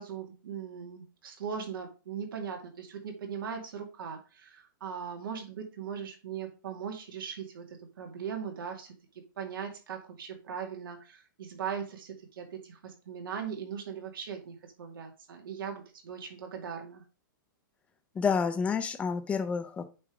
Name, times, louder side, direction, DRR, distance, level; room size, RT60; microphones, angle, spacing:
voice 1, 0.0-8.9 9.4-17.0, right 7 dB, 80° right, 2 dB, 2.5 m, -39 dB
voice 2, 18.1-19.8, left 6 dB, 10° left, 8 dB, 0.7 m, -29 dB
8.6 x 3.6 x 4.9 m, 0.31 s
hypercardioid pair, 160°, 11 cm